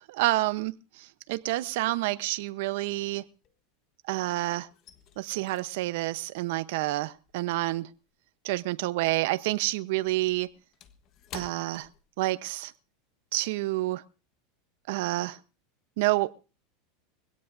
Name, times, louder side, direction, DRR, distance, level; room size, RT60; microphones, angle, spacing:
voice 1, 0.0-3.2 4.1-4.7 5.2-7.9 8.4-10.5 11.3-11.9 12.2-12.7 13.3-14.0 14.9-15.4 16.0-16.3, right 18 dB, 70° right, 14 dB, 0.9 m, -28 dB
sound 1, 1.3-1.8 2.1-4.1 4.4-9.1 9.3-12.7 13.0-13.2 13.6-13.9, left 9 dB, 40° left, 1.4 m, -52 dB
22.0 x 17.0 x 2.7 m, 0.33 s
supercardioid pair, 140°, 0 cm